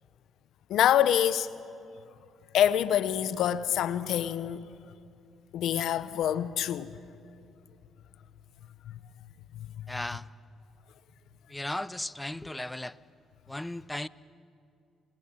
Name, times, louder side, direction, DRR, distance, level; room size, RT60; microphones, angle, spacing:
voice 1, 0.7-1.5 2.5-4.7 5.5-6.9 8.9-9.0, left 10 dB, 75° left, 1.0 m, -26 dB
voice 2, 9.9-10.3 11.5-13.0 13.5-14.1, left 1 dB, 10° left, 0.8 m, -36 dB
28.5 x 21.0 x 9.1 m
supercardioid pair, 60°, 0 cm